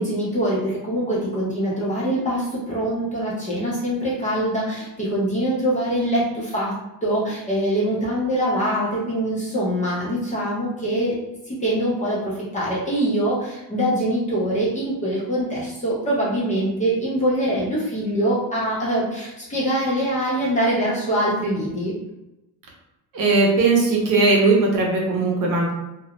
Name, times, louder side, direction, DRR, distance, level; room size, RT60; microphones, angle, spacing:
voice 1, 0.0-6.7 7.0-11.2 11.5-21.9, right 1 dB, 20° left, -7 dB, 0.4 m, -23 dB
voice 2, 23.1-25.7, right 3 dB, 55° right, -1 dB, 0.7 m, -18 dB
2.4 x 2.0 x 2.8 m, 0.95 s
cardioid pair, 180°, 40 cm